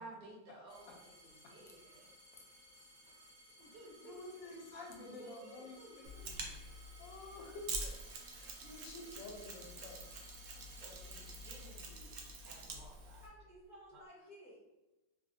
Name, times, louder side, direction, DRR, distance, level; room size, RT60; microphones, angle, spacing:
voice 1, 0.0-2.4 3.6-4.3 5.2-6.5 10.8-13.2 13.9-14.0, right 2 dB, 70° right, -2 dB, 1.4 m, -56 dB
sound 1, 0.7-12.4 13.1-13.7, equal, 50° right, 1.2 m, -60 dB
voice 2, 3.6-10.0, left 3 dB, 85° left, 1 dB, 1.3 m, -51 dB
Mechanisms, 6.0-13.3, right 2 dB, 90° right, 0.6 m, -47 dB
voice 3, 13.2-14.6, equal, ahead, -10 dB, 0.6 m, -56 dB
3.4 x 2.4 x 2.5 m, 1.0 s
omnidirectional pair, 2.0 m